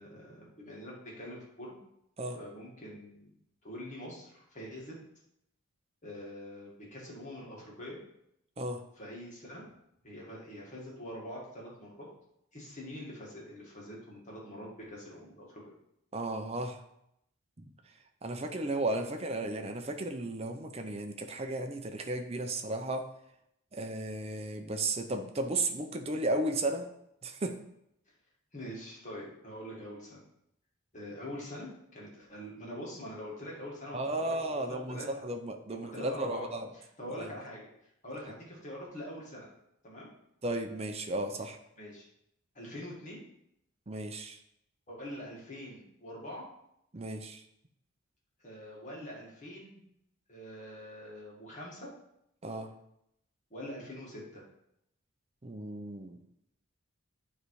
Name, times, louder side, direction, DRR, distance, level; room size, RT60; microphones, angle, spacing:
voice 1, 0.0-1.8 2.3-3.4 3.6-5.0 6.0-8.0 9.0-9.7 10.0-12.1 12.5-15.6 28.5-30.2 30.9-35.2 35.7-36.5 36.7-39.5 39.8-40.1 41.8-42.1 42.5-43.3 44.9-46.5 48.4-49.8 50.3-51.9 53.5-54.4, equal, 35° left, -4 dB, 1.9 m, -44 dB
voice 2, 16.1-16.8 17.6-17.7 18.2-23.1 23.7-26.9 27.2-27.6 33.9-36.7 37.2-37.3 40.4-41.6 43.9-44.4 46.9-47.4 52.4-52.7 55.4-56.2, right 2 dB, 30° right, 6 dB, 0.6 m, -34 dB
9.3 x 3.3 x 4.7 m, 0.78 s
head